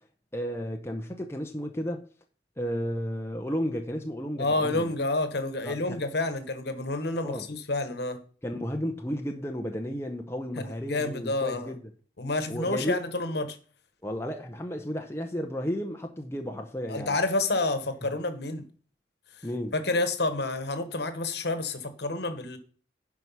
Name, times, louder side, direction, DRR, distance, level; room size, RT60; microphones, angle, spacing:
voice 1, 0.3-2.1 2.6-4.9 5.6-6.0 7.1-7.5 8.4-11.9 12.5-13.0 14.0-17.2 19.4-19.7, equal, 15° left, 0.8 m, -33 dB
voice 2, 4.4-8.2 10.5-11.7 12.2-13.6 16.9-18.7 19.7-22.6, left 2 dB, 60° left, 1.3 m, -29 dB
10.5 x 4.7 x 5.6 m
head